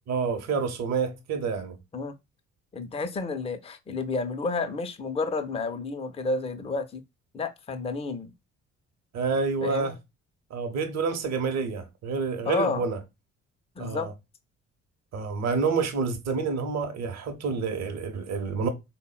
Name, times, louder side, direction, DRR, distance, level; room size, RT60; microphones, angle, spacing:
voice 1, 0.1-1.8 9.1-9.9 10.5-13.0 13.8-14.1 15.1-18.7, right 5 dB, 50° right, 0.8 m, -28 dB
voice 2, 2.7-7.0 7.3-8.3 9.6-10.0 12.4-12.8 13.8-14.1, left 3 dB, 15° left, 0.5 m, -30 dB
3.5 x 2.1 x 2.2 m
hypercardioid pair, 50°, 36 cm